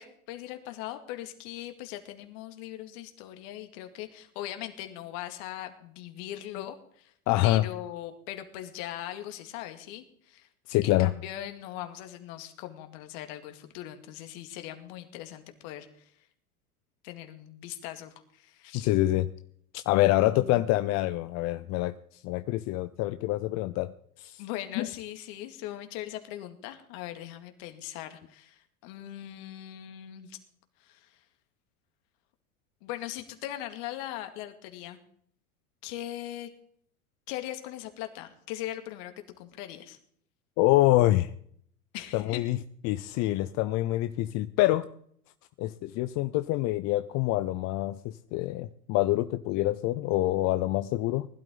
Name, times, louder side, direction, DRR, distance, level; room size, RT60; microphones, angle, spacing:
voice 1, 0.0-7.1 7.4-10.5 10.8-16.1 17.0-18.9 20.0-20.6 24.4-30.4 30.8-31.2 32.8-35.0 35.8-36.5 37.3-40.0 41.9-42.4, left 13 dB, 55° left, 7 dB, 2.2 m, -40 dB
voice 2, 7.3-7.6 10.7-11.1 18.7-19.3 19.7-23.9 24.2-24.4 24.8-24.9 40.6-41.3 42.1-42.6 42.8-44.9 45.6-51.3, left 16 dB, 40° left, 12 dB, 0.6 m, -26 dB
20.0 x 12.0 x 3.9 m, 0.63 s
hypercardioid pair, 95°, 45 cm